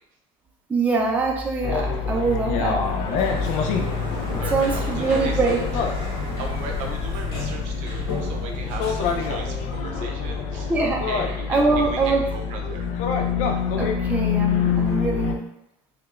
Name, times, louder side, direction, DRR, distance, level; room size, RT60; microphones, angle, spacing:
voice 1, 0.7-2.8 4.5-5.6 10.7-11.0 11.5-12.2 13.8-15.4, right 3 dB, 10° right, -1 dB, 0.5 m, -23 dB
sound 1, 1.6-15.3, left 6 dB, 55° left, 0.5 m, -26 dB
Sliding door, 2.8-9.9, left 3 dB, 85° left, 1.3 m, -33 dB
voice 2, 4.1-5.4 6.4-10.7 11.1-12.9, right 4 dB, 65° right, 2 dB, 0.7 m, -36 dB
4.7 x 2.3 x 2.4 m, 0.80 s
supercardioid pair, 130°, 14 cm